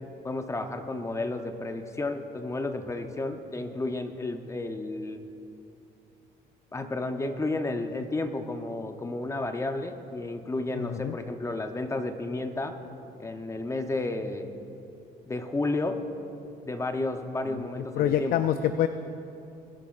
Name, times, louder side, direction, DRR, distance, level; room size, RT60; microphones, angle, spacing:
voice 1, 0.2-5.2 6.7-12.8 13.2-14.5 15.3-16.0 16.6-18.5, left 2 dB, 15° left, 7 dB, 0.8 m, -32 dB
voice 2, 10.7-11.2 17.5-17.6 18.0-18.9, left 10 dB, 65° left, 10 dB, 0.4 m, -26 dB
23.0 x 10.5 x 2.5 m, 2.8 s
cardioid pair, 110°, 17 cm